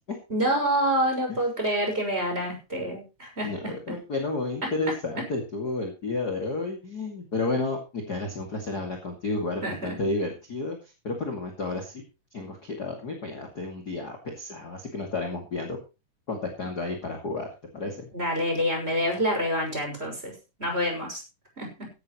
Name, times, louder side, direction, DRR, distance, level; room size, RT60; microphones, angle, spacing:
voice 1, 0.3-4.0 9.6-9.9 18.1-20.3 20.6-21.2 21.6-21.9, equal, 15° right, 2 dB, 6.3 m, -27 dB
voice 2, 3.4-10.8 11.0-12.0 12.3-15.8 16.3-17.5 17.7-18.1, left 3 dB, 30° left, 2 dB, 2.6 m, -31 dB
16.5 x 12.0 x 3.1 m, 0.29 s
omnidirectional pair, 3.7 m